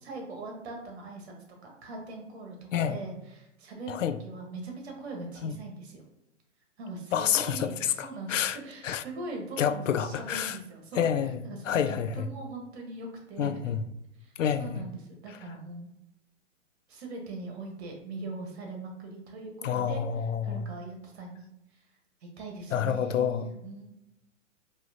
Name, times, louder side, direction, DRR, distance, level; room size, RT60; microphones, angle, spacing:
voice 1, 0.0-1.3 1.6-6.0 6.8-11.1 11.4-13.7 14.2-14.3 14.6-15.9 16.9-20.0 20.4-21.5 22.2-23.8, right 2 dB, 60° right, 1.3 m, -41 dB
voice 2, 7.1-8.6 8.8-9.0 9.6-10.6 11.0-11.4 11.7-12.2 13.4-13.8 14.4-14.8 19.6-20.6 22.7-23.5, left 8 dB, 80° left, 0.5 m, -28 dB
4.8 x 2.8 x 2.8 m
hypercardioid pair, 125°, 37 cm